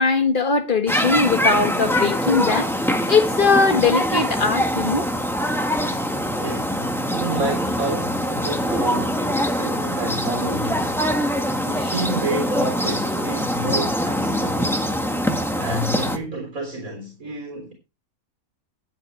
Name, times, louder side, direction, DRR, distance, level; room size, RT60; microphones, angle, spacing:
voice 1, 0.0-2.7 3.1-5.1, left 4 dB, 35° left, 1.9 m, -20 dB
sound 1, 0.9-16.2, equal, ahead, 1.5 m, -23 dB
voice 2, 6.4-11.0 11.6-14.8 15.5-17.7, right 2 dB, 80° right, 4.1 m, -29 dB
20.0 x 8.3 x 3.3 m
omnidirectional pair, 1.5 m